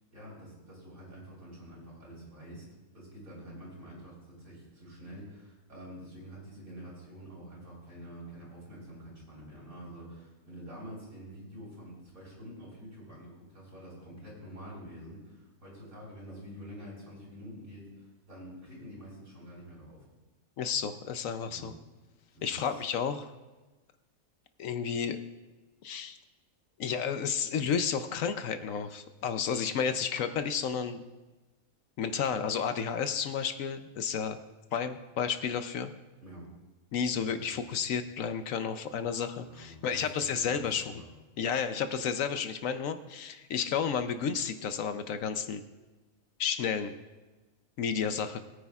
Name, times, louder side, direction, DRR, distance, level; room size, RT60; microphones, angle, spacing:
voice 1, 0.1-2.7 2.9-20.0 21.4-21.7 22.3-22.8 36.2-36.4 37.3-37.6 39.5-41.1, equal, 60° right, -4 dB, 5.1 m, -47 dB
voice 2, 20.6-21.7 22.4-23.3 24.6-25.2 25.8-26.2 26.8-31.0 32.0-34.4 34.7-35.9 36.9-40.9 41.4-45.6 46.4-46.9 47.8-48.4, left 7 dB, 70° left, 9 dB, 1.0 m, -31 dB
21.0 x 9.5 x 2.4 m, 1.2 s
omnidirectional pair, 1.5 m